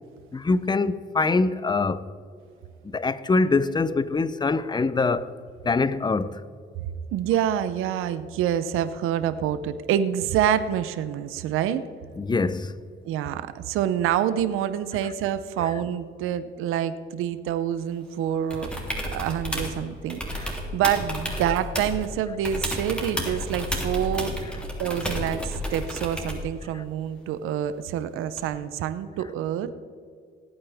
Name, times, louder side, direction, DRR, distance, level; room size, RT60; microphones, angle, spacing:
voice 1, 0.3-2.0 2.8-5.3 5.6-6.4 12.2-12.8 15.6-15.7 20.4-20.5 26.7-26.8, left 3 dB, 20° left, 0.6 m, -24 dB
voice 2, 7.1-11.9 13.0-18.7 19.1-24.4 24.8-29.7, right 10 dB, 90° right, 0.7 m, -27 dB
sound 1, 18.5-19.8 20.1-22.1 22.4-26.5 28.4-28.5, equal, 5° left, 3.0 m, -31 dB
18.5 x 8.8 x 3.5 m
cardioid pair, 80°, 21 cm